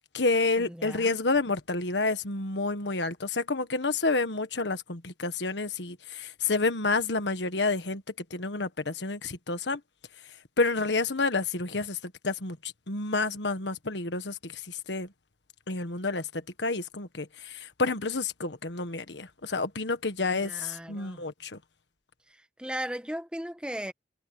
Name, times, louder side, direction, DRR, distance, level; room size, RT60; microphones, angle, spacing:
voice 1, 0.0-8.0 8.3-9.8 10.6-15.1 15.7-21.6, left 3 dB, 85° left, 1.5 m, -29 dB
voice 2, 0.6-1.2 20.3-21.2 22.3-23.9, equal, 5° right, 1.1 m, -37 dB
head